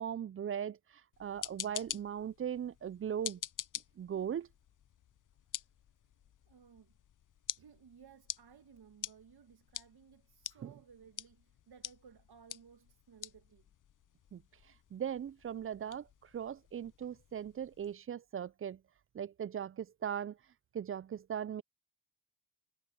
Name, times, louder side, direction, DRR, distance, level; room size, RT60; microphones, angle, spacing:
voice 1, 0.0-3.4 4.0-4.5 10.6-10.7 14.3-14.4 14.9-18.8 19.1-20.4 20.7-21.6, right 9 dB, 30° right, 0.4 m, -39 dB
sound 1, 1.1-17.9, left 10 dB, 45° left, 0.8 m, -48 dB
voice 2, 6.5-6.9 7.6-13.7, right 7 dB, 55° right, 2.0 m, -59 dB
hypercardioid pair, 45°, 45 cm